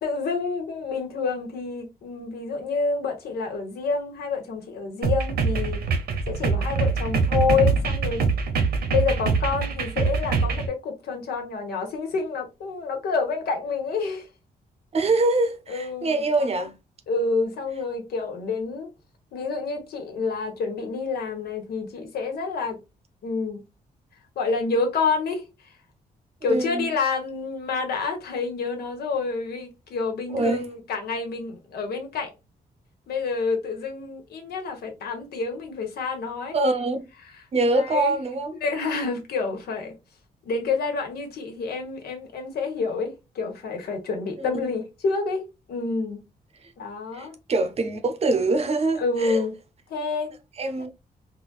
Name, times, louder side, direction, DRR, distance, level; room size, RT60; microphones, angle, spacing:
voice 1, 0.0-5.8 6.3-8.3 8.9-14.3 15.7-16.6 17.1-18.9 19.3-22.8 23.2-23.6 24.3-25.7 26.4-32.3 33.1-36.5 37.7-38.2 38.6-40.0 40.4-46.2 46.8-47.3 49.0-49.5 49.9-50.3, left 4 dB, 90° left, 1.2 m, -28 dB
sound 1, 5.0-10.7, right 5 dB, 75° right, 0.8 m, -24 dB
voice 2, 14.9-16.7 26.5-26.9 30.3-30.6 36.5-37.1 37.5-38.5 44.4-44.7 47.1-49.5 50.6-50.9, right 2 dB, 40° right, 0.6 m, -24 dB
4.0 x 2.2 x 2.3 m
cardioid pair, 130°, 16 cm